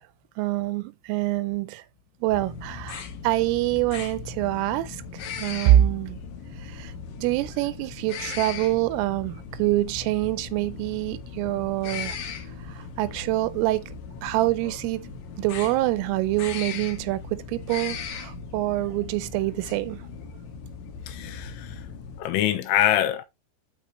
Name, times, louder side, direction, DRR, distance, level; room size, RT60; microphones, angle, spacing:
voice 1, 0.4-1.8 2.2-6.2 6.6-6.9 7.2-12.2 12.6-13.9 14.2-20.0, right 15 dB, 85° right, 3.1 m, -25 dB
sound 1, 2.3-22.2, left 5 dB, 65° left, 3.7 m, -38 dB
voice 2, 21.1-21.9 22.2-23.2, left 12 dB, 85° left, 3.4 m, -24 dB
11.5 x 4.8 x 3.0 m
omnidirectional pair, 5.9 m